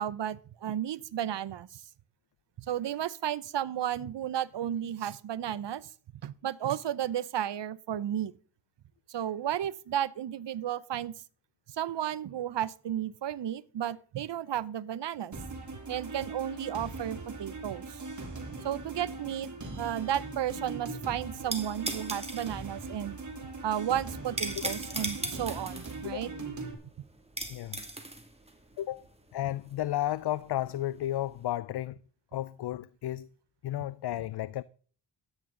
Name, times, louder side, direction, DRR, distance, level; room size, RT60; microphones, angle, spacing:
voice 1, 0.0-1.8 2.6-5.9 6.2-8.3 9.1-11.1 11.7-15.3 15.9-18.0 18.6-23.2 23.6-26.3, right 10 dB, 60° right, 0.8 m, -33 dB
sound 1, 15.3-26.7, right 3 dB, 35° right, 3.4 m, -41 dB
sound 2, 20.3-31.4, right 2 dB, 10° right, 2.3 m, -39 dB
voice 2, 29.3-32.0 32.3-33.3 33.6-34.6, left 13 dB, 55° left, 0.5 m, -33 dB
13.0 x 9.7 x 3.8 m
supercardioid pair, 45°, 49 cm